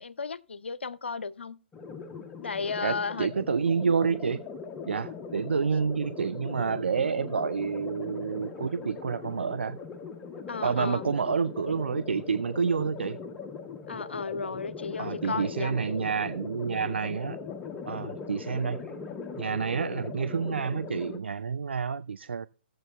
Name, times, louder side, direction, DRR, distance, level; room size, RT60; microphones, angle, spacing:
voice 1, 0.0-1.6 2.4-3.3 10.5-11.0 13.9-16.1, left 4 dB, 70° left, 0.5 m, -34 dB
sound 1, 1.7-21.2, left 5 dB, 15° left, 0.7 m, -40 dB
voice 2, 2.8-4.4 4.9-9.8 10.6-13.2 15.0-17.4 17.9-18.9 19.4-22.5, right 5 dB, 70° right, 0.3 m, -29 dB
17.5 x 7.5 x 2.3 m
figure-of-eight pair, 130°, 6 cm